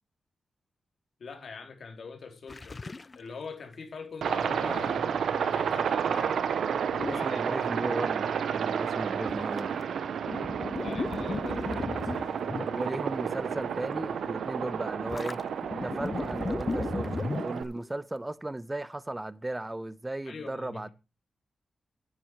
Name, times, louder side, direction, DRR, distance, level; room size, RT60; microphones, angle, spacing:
voice 1, 1.2-2.8 3.2-6.4 7.1-7.7 10.8-12.3 20.2-20.9, left 5 dB, 70° left, 3.5 m, -43 dB
sound 1, 2.5-3.2 3.7-3.8 6.9-7.3 9.3-9.9 10.2-12.9 13.3-13.7 15.1-17.9, left 3 dB, 40° left, 0.4 m, -35 dB
Aircraft, 4.2-17.6, right 7 dB, 85° right, 0.9 m, -31 dB
voice 2, 7.1-8.3 8.5-9.8 12.7-15.4 15.7-20.9, right 2 dB, 20° right, 1.0 m, -36 dB
10.0 x 8.8 x 4.8 m
cardioid pair, 55°, 0 cm